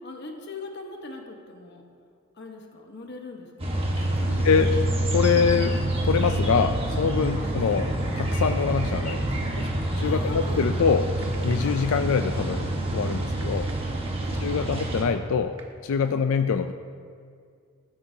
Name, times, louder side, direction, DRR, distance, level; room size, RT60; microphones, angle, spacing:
voice 1, 0.0-1.8 2.4-3.9 4.2-4.5 5.3-5.7 7.3-7.5 10.0-10.8 11.6-11.8 14.2-14.8 16.0-16.4, left 3 dB, 55° left, 2 dB, 1.2 m, -41 dB
sound 1, 3.6-15.0, right 1 dB, 25° right, 1.3 m, -27 dB
voice 2, 5.1-5.7 6.0-9.3 9.6-9.7 10.0-11.1 11.4-13.7 14.4-15.5 15.8-16.7, left 6 dB, 75° left, 7 dB, 0.4 m, -24 dB
sound 2, 10.2-15.7, right 4 dB, 60° right, 1.3 m, -45 dB
14.0 x 12.5 x 2.8 m, 2.2 s
head